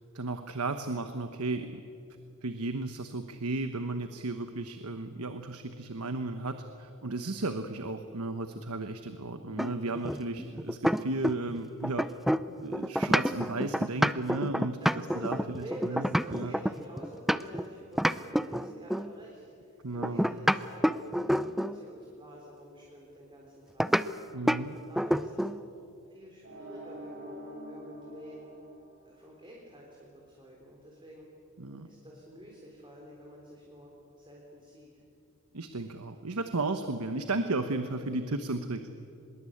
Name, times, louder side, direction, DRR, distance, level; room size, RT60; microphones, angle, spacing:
voice 1, 0.1-1.8 2.4-12.1 12.6-14.8 15.2-16.1 16.3-16.5 19.8-20.3 24.3-24.8 31.6-31.9 35.5-38.8, right 2 dB, 75° right, 8 dB, 1.2 m, -34 dB
sound 1, 9.6-11.6 11.8-17.7 18.0-19.1 20.0-21.8 23.8-24.1 24.5-24.7 25.0-25.6, equal, ahead, 0.5 m, -28 dB
voice 2, 14.8-21.0 21.3-23.9 24.5-25.8 26.1-28.5 29.0-31.3 31.9-35.0, equal, 20° right, -2 dB, 3.7 m, -48 dB
sound 2, 26.4-29.4, equal, 50° right, 5.0 m, -45 dB
24.0 x 21.5 x 8.6 m, 2.6 s
head